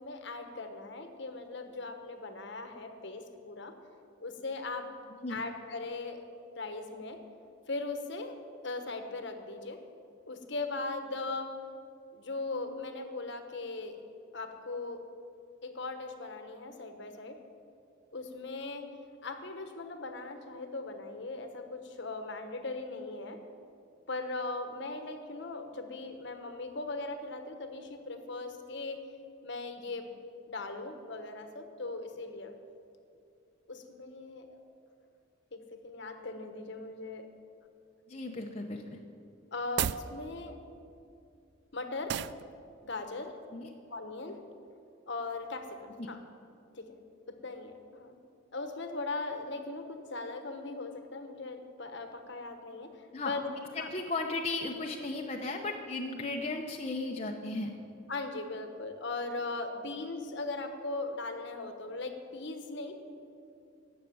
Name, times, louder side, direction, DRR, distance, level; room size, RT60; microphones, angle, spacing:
voice 1, 0.0-3.7 4.2-4.9 5.3-6.2 6.6-7.2 7.7-8.3 8.6-9.8 10.3-11.5 12.1-14.0 14.3-15.0 15.6-17.4 18.1-18.9 19.2-23.4 24.1-29.1 29.4-30.1 30.5-32.5 33.7-34.6 35.5-37.3 39.5-40.6 41.7-42.2 42.8-43.4 43.9-44.4 45.1-46.2 46.7-47.0 47.3-48.2 48.5-53.5 53.8-53.9 58.1-62.9, left 3 dB, 55° left, 6 dB, 1.2 m, -39 dB
voice 2, 38.1-39.0 43.5-43.7 46.0-46.1 53.1-57.7, left 2 dB, 30° left, 0 dB, 0.8 m, -36 dB
sound 1, 39.6-40.1 42.1-42.4, right 9 dB, 55° right, 0.3 m, -32 dB
14.5 x 6.6 x 9.4 m, 2.5 s
head